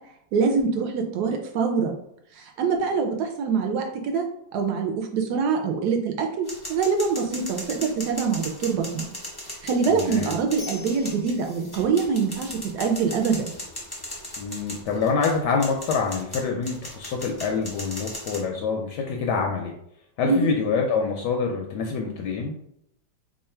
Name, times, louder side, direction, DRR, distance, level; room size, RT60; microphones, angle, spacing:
voice 1, 0.3-2.0 2.4-4.2 4.5-9.1 9.6-13.6 20.2-20.5, right 5 dB, 70° right, 4 dB, 1.0 m, -24 dB
sound 1, 6.4-18.4, left 1 dB, 25° left, 0.5 m, -37 dB
voice 2, 9.9-10.3 14.4-19.7 20.2-22.6, left 5 dB, 75° left, 1 dB, 1.1 m, -26 dB
3.1 x 2.4 x 4.3 m, 0.74 s
omnidirectional pair, 2.1 m